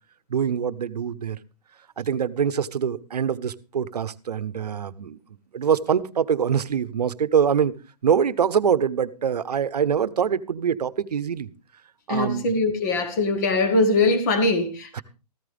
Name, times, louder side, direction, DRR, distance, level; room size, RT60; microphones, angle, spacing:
voice 1, 0.3-1.4 2.0-5.2 5.5-7.7 8.0-11.5 12.1-12.6 14.9-15.0, right 7 dB, 75° right, 1.0 m, -24 dB
voice 2, 12.1-15.0, left 2 dB, 25° left, 1.6 m, -22 dB
14.5 x 14.0 x 3.5 m
hypercardioid pair, 165°, 21 cm